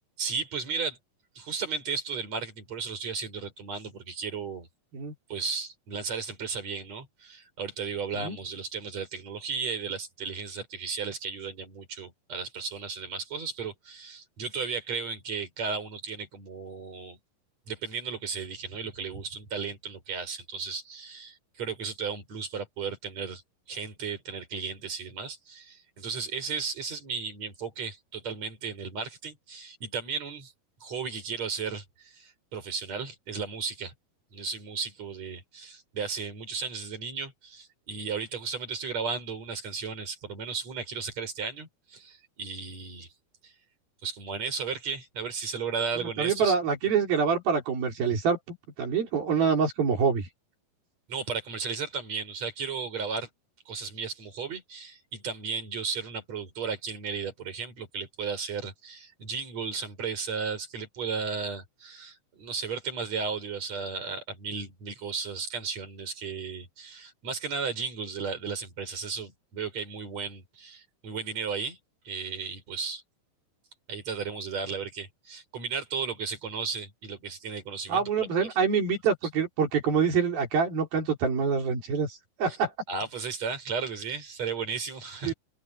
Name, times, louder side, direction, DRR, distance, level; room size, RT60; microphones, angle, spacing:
voice 1, 0.2-1.0 1.4-4.7 5.3-17.2 17.7-23.4 23.7-30.5 30.8-33.9 34.3-43.1 43.4-43.5 44.0-46.6 51.1-53.3 53.7-71.8 72.1-73.0 73.9-78.3 82.5-82.6 82.9-85.3, right 5 dB, 45° right, 7.0 m, -35 dB
voice 2, 46.0-50.3 77.9-82.7 85.2-85.3, right 6 dB, 85° right, 6.0 m, -26 dB
open air
omnidirectional pair, 4.1 m